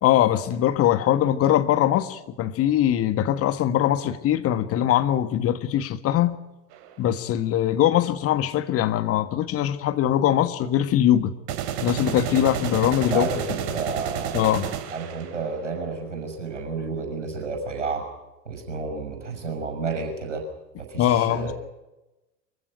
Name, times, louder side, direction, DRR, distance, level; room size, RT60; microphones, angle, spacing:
voice 1, 0.0-6.4 7.0-11.3 11.8-13.3 14.3-14.7 21.0-21.5, left 11 dB, 40° left, 12 dB, 1.6 m, -22 dB
sound 1, 6.7-6.9 11.5-15.7, right 9 dB, 55° right, 3.1 m, -30 dB
voice 2, 13.0-14.4 14.9-18.0 18.5-20.4 20.8-21.5, right 4 dB, 80° right, 4 dB, 6.2 m, -31 dB
24.5 x 15.5 x 10.0 m, 1.0 s
figure-of-eight pair, 70°, 36 cm